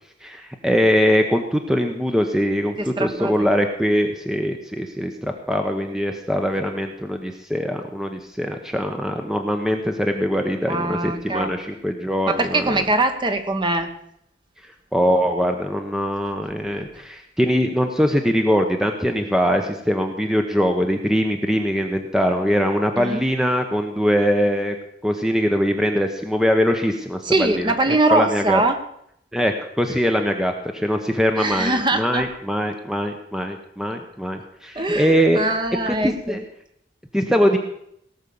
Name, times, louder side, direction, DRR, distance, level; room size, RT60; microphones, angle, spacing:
voice 1, 0.2-12.8 14.9-24.8 25.0-28.6 29.3-35.4 35.9-36.4 37.1-37.6, equal, 5° right, 4 dB, 0.9 m, -22 dB
voice 2, 2.8-3.3 10.7-11.5 12.3-13.9 23.0-23.2 27.2-28.8 31.4-32.3 34.7-36.4, right 2 dB, 25° right, 7 dB, 1.2 m, -22 dB
17.5 x 6.4 x 7.0 m, 0.72 s
head